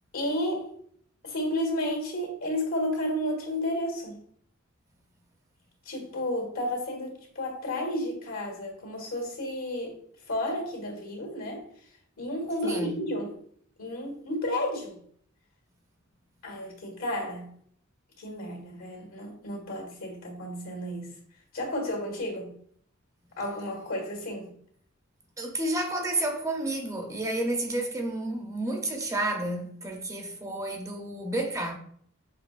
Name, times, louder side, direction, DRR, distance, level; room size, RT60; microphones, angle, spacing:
voice 1, 0.1-0.8 1.2-4.2 5.8-10.0 10.3-11.7 12.2-13.3 13.8-15.0 16.4-17.5 18.2-21.1 21.5-22.5 23.4-24.5, left 1 dB, 85° left, 1.6 m, -32 dB
voice 2, 25.4-31.8, right 1 dB, 15° right, 0.6 m, -30 dB
6.5 x 2.8 x 2.4 m
head